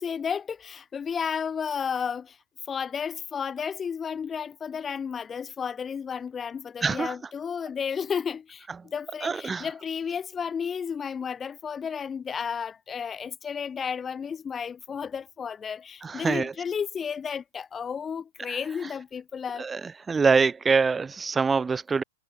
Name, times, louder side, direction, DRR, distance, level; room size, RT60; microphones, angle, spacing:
voice 1, 0.0-2.4 2.7-19.7, left 7 dB, 20° left, 1.3 m, -32 dB
voice 2, 6.8-7.2 8.7-8.8 9.2-9.7 16.0-16.5 18.5-18.7 19.6-22.0, right 5 dB, 15° right, 0.4 m, -25 dB
hypercardioid pair, 110°, 0 cm